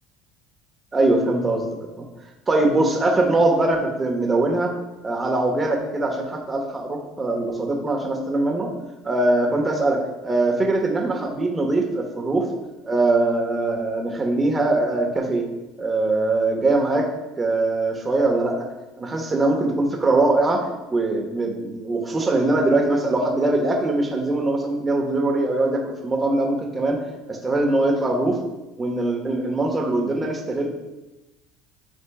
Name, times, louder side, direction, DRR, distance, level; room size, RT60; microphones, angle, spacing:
voice 1, 0.9-1.7 2.0-2.1 2.5-4.7 5.0-8.7 9.0-12.4 12.8-15.4 15.8-17.1 17.4-18.7 19.0-27.0 27.3-28.4 28.8-30.7, right 2 dB, 20° right, 1 dB, 1.6 m, -22 dB
12.0 x 4.3 x 2.4 m, 1.0 s
hypercardioid pair, 75°, 0 cm